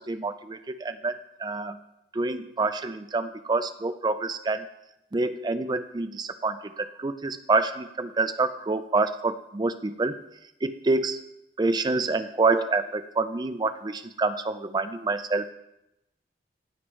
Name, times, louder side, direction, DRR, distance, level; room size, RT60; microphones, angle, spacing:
voice 1, 0.1-1.1 1.4-1.7 2.2-4.6 5.1-10.2 10.6-11.2 11.6-15.5, right 3 dB, 25° right, 10 dB, 0.4 m, -27 dB
15.0 x 7.9 x 3.2 m, 0.87 s
head